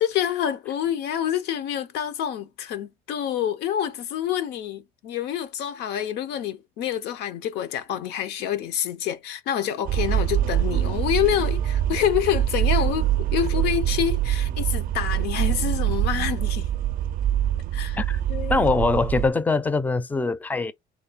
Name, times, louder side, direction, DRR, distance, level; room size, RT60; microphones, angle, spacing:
voice 1, 0.0-16.7 17.7-18.0 18.3-18.7, left 10 dB, 85° left, 0.6 m, -27 dB
sound 1, 9.9-19.3, right 12 dB, 55° right, 0.4 m, -24 dB
voice 2, 18.5-20.7, left 3 dB, 10° left, 0.4 m, -23 dB
3.5 x 2.2 x 4.0 m
cardioid pair, 110°, 17 cm